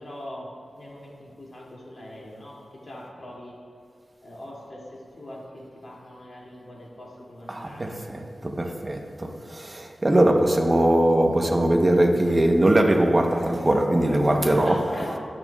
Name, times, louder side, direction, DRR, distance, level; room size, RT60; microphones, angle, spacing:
voice 1, 0.0-3.6 4.2-8.0 14.6-15.2, left 1 dB, 50° left, 2.7 m, -41 dB
voice 2, 7.5-14.8, right 1 dB, 25° right, 1.0 m, -21 dB
21.5 x 7.4 x 2.4 m
wide cardioid pair, 85°, 0 cm